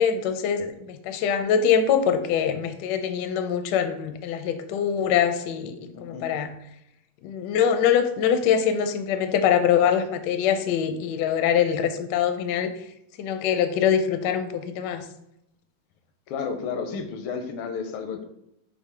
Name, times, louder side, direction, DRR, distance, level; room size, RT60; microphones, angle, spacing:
voice 1, 0.0-5.8 6.0-6.5 7.2-12.7 13.2-15.0, left 8 dB, 75° left, 8 dB, 1.0 m, -23 dB
voice 2, 5.9-6.3 16.3-18.2, left 5 dB, 90° left, 7 dB, 1.6 m, -32 dB
5.7 x 2.2 x 4.3 m, 0.79 s
omnidirectional pair, 2.3 m